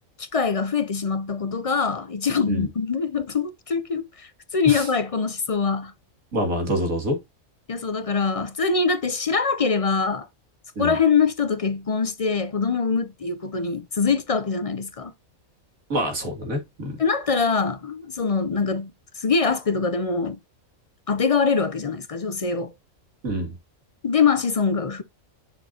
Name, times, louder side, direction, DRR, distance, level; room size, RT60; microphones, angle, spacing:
voice 1, 0.2-5.9 7.7-10.3 10.8-15.1 17.0-20.4 21.1-22.7 24.0-25.0, left 5 dB, 45° left, 0.4 m, -23 dB
voice 2, 6.3-7.2 10.8-11.0 15.9-17.0 23.2-23.5, equal, 75° right, 3.0 m, -26 dB
7.4 x 6.6 x 2.8 m
omnidirectional pair, 1.4 m